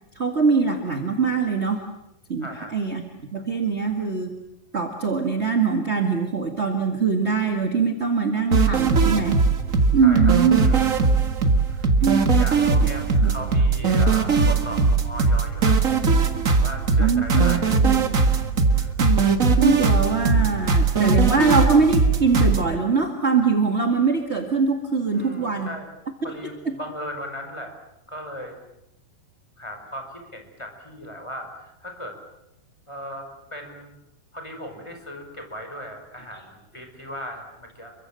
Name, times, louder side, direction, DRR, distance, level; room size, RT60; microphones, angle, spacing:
voice 1, 0.1-1.8 2.3-2.5 2.7-3.0 3.3-4.3 4.7-9.4 9.9-10.6 12.0-12.3 13.2-13.3 17.0-17.6 17.8-18.0 19.0-25.7 26.6-26.7, right 5 dB, 25° right, 3 dB, 1.4 m, -22 dB
voice 2, 2.4-2.7 10.0-11.2 11.5-11.9 12.3-15.8 16.5-17.8 18.8-19.0 25.1-25.9 26.2-27.7 28.1-28.6 29.6-32.2 32.9-33.9 34.3-37.9, equal, 5° left, 4 dB, 5.5 m, -37 dB
sound 1, 8.5-22.6, right 4 dB, 50° right, 0.9 m, -19 dB
30.0 x 24.0 x 7.7 m, 0.84 s
omnidirectional pair, 4.2 m